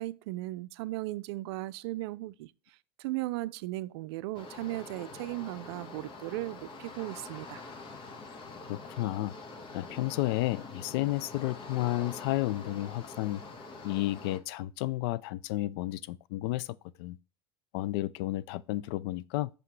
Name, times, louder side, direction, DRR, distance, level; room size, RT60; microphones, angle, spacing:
voice 1, 0.0-2.5 3.0-7.6, right 18 dB, 75° right, 0.4 m, -36 dB
sound 1, 4.3-14.4, left 3 dB, 40° left, 1.3 m, -45 dB
voice 2, 8.7-9.3 9.7-13.4 13.8-16.7 17.0-17.2 17.7-19.5, left 16 dB, 70° left, 0.4 m, -32 dB
5.8 x 5.1 x 3.1 m
supercardioid pair, 105°, 14 cm